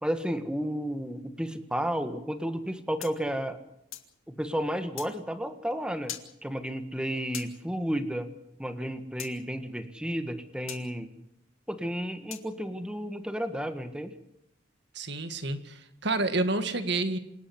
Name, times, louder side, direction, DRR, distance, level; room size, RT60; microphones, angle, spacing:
voice 1, 0.0-3.6 4.3-6.1 6.4-8.3 8.6-11.1 11.7-14.1, equal, 5° right, 9 dB, 1.6 m, -32 dB
sound 1, 3.0-4.1 5.0-5.1 6.1-6.3 7.3-7.5 9.2-9.3 10.7-10.8 12.3-12.5, left 11 dB, 90° left, 2.4 m, -40 dB
voice 2, 14.9-17.2, right 2 dB, 55° right, 9 dB, 2.0 m, -29 dB
27.0 x 11.5 x 9.5 m, 0.81 s
head